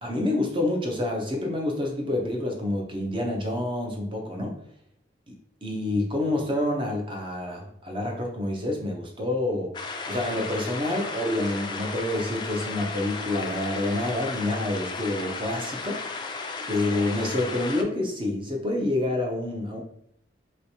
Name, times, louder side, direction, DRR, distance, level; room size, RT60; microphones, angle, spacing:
voice 1, 0.0-4.5 5.3-5.4 5.6-9.7 10.1-16.0 16.7-19.8, left 1 dB, 30° right, 1 dB, 0.7 m, -28 dB
sound 1, 9.7-17.8, left 4 dB, 25° left, 0.3 m, -35 dB
3.1 x 3.1 x 2.8 m, 0.70 s
head